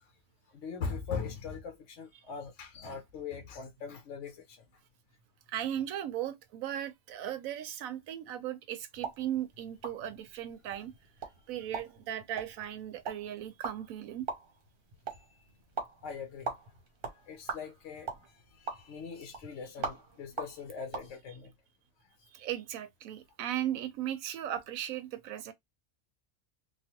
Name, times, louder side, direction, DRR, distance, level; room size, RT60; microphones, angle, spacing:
voice 1, 0.5-4.6 15.1-15.5 16.0-16.5 17.1-21.5, left 5 dB, 70° left, 1.0 m, -41 dB
voice 2, 5.5-10.9 11.5-14.3 22.3-25.5, right 11 dB, 85° right, 1.0 m, -37 dB
sound 1, 8.9-21.1, right 4 dB, 50° right, 0.9 m, -43 dB
3.2 x 2.4 x 2.8 m
omnidirectional pair, 1.4 m